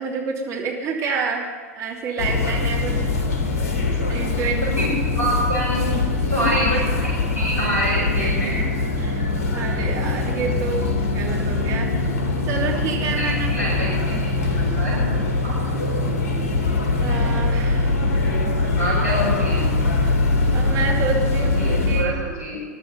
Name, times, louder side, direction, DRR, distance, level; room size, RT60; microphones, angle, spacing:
voice 1, 0.0-1.5 1.8-3.1 4.1-4.7 9.0-9.3 9.5-12.2 12.5-13.7 17.0-17.9 20.5-22.2, right 5 dB, 35° right, 0 dB, 3.2 m, -28 dB
sound 1, 2.2-22.0, left 3 dB, 55° left, 3.1 m, -22 dB
voice 2, 4.6-6.0 6.3-8.6 13.2-15.1 15.4-15.5 18.5-19.6 21.4-22.6, right 1 dB, 90° right, -8 dB, 6.7 m, -26 dB
21.5 x 12.0 x 5.4 m, 1.5 s
figure-of-eight pair, 95°, 8 cm